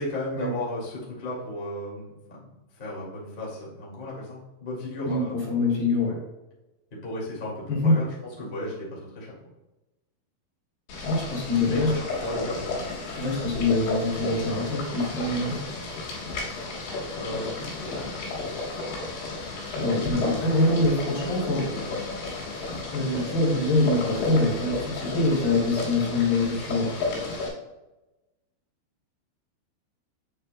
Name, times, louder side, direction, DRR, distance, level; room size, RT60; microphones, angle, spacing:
voice 1, 0.0-2.4 2.8-5.4 7.0-9.3 11.4-11.5 11.7-12.9 17.2-18.1 20.2-20.8 21.1-22.0, left 1 dB, 35° left, -6 dB, 0.8 m, -35 dB
voice 2, 5.1-6.2 7.7-8.0 11.0-11.9 13.2-15.6 19.7-21.7 22.9-26.9, left 2 dB, 55° left, -5 dB, 4.2 m, -24 dB
Boiling, 10.9-27.5, left 3 dB, 85° left, 4.2 m, -33 dB
8.8 x 8.0 x 2.2 m, 1.0 s
omnidirectional pair, 5.2 m